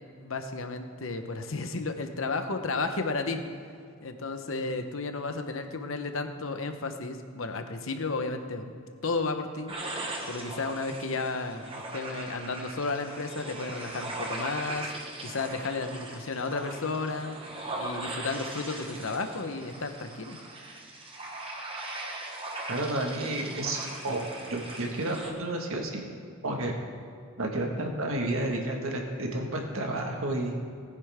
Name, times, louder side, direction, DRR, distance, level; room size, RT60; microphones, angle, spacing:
voice 1, 0.2-3.4 4.0-8.7 9.0-9.7 10.3-14.9 15.2-17.4 17.8-20.4, left 3 dB, 75° left, 7 dB, 1.0 m, -33 dB
sound 1, 9.7-25.3, right 2 dB, 25° right, 1.3 m, -39 dB
voice 2, 22.7-24.2 24.5-26.1 26.4-26.8 27.4-30.7, right 1 dB, 85° right, 2 dB, 1.7 m, -31 dB
19.5 x 9.4 x 3.6 m, 2.3 s
head